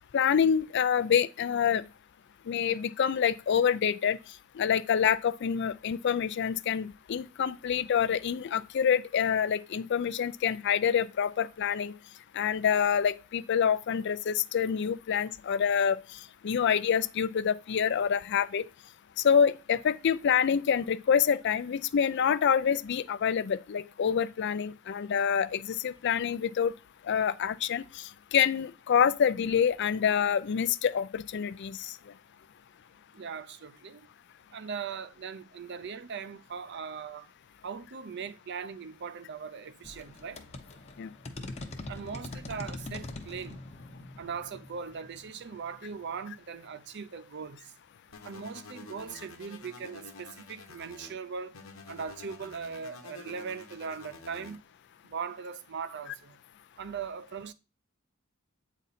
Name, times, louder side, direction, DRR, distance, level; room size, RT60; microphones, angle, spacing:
voice 1, 0.1-1.8 2.5-4.2 4.6-11.9 12.3-16.0 16.4-18.6 19.2-26.7 27.1-31.8 41.0-41.1, left 7 dB, 55° left, 0.4 m, -27 dB
voice 2, 33.1-34.1 34.5-37.3 37.6-40.4 41.9-43.6 44.2-47.7 48.2-51.6 51.9-54.6 55.0-56.4 56.8-57.5, right 6 dB, 55° right, 0.5 m, -39 dB
sound 1, 39.8-46.3, left 2 dB, 30° left, 0.8 m, -43 dB
sound 2, 48.1-51.1 51.5-54.6, left 4 dB, 70° left, 1.0 m, -49 dB
8.3 x 4.1 x 4.1 m
head